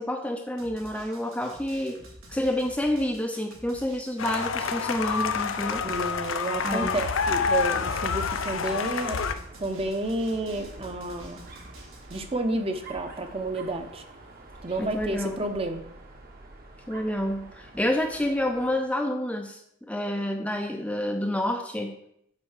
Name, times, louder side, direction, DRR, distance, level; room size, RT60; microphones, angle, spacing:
voice 1, 0.0-2.0 2.3-5.8 6.6-7.0 14.8-15.4 16.9-22.0, left 1 dB, 5° left, 4 dB, 0.6 m, -28 dB
Drum, 0.6-12.2, right 1 dB, 80° right, 2.4 m, -48 dB
sound 1, 4.2-9.3, left 5 dB, 70° left, 0.5 m, -28 dB
Dog, 5.6-18.9, right 2 dB, 45° right, 1.3 m, -48 dB
voice 2, 5.8-9.3 9.6-11.5 12.1-14.0 14.6-15.8, right 2 dB, 30° right, 5 dB, 0.8 m, -30 dB
7.5 x 4.5 x 6.5 m, 0.72 s
head